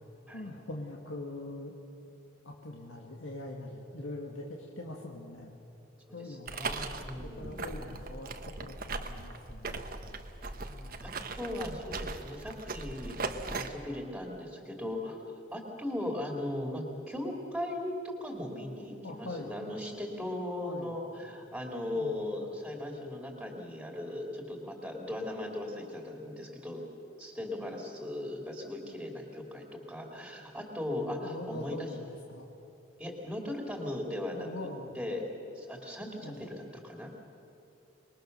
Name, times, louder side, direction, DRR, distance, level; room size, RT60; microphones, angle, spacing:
voice 1, 0.3-1.7 2.4-5.6 6.1-6.5 7.2-9.9 10.7-11.2 19.0-19.6 20.6-21.0 21.9-22.2 30.9-32.5 34.4-34.9 36.2-36.5, left 1 dB, 85° left, 0 dB, 2.0 m, -43 dB
voice 2, 6.3-7.8 9.9-10.1 10.4-10.5 11.0-11.1 11.4-13.2 13.5-15.2 15.5-26.8 27.2-31.9 33.0-34.7 34.9-35.2 35.5-37.1, left 1 dB, 5° right, 1 dB, 2.9 m, -38 dB
sound 1, 6.5-13.7, right 3 dB, 45° right, 1.2 m, -39 dB
26.0 x 21.5 x 6.7 m, 2.8 s
head